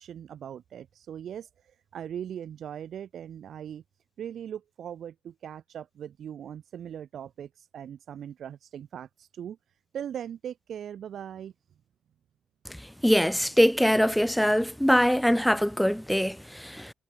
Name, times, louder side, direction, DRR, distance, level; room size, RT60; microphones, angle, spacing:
voice 1, 0.0-3.8 4.2-9.6 9.9-11.5, right 9 dB, 65° right, 2.0 m, -40 dB
voice 2, 13.0-16.9, equal, ahead, 0.6 m, -23 dB
cardioid pair, 90°, 0 cm